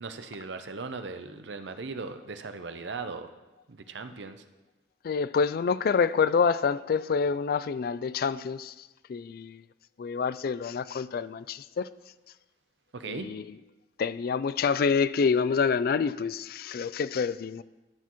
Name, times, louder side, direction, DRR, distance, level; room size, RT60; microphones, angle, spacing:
voice 1, 0.0-3.3 3.7-4.4 12.9-13.3, right 4 dB, 85° right, 0.7 m, -38 dB
voice 2, 5.0-9.6 10.0-11.9 13.1-13.6 14.0-17.6, left 5 dB, 55° left, 0.3 m, -27 dB
13.5 x 8.3 x 3.0 m
head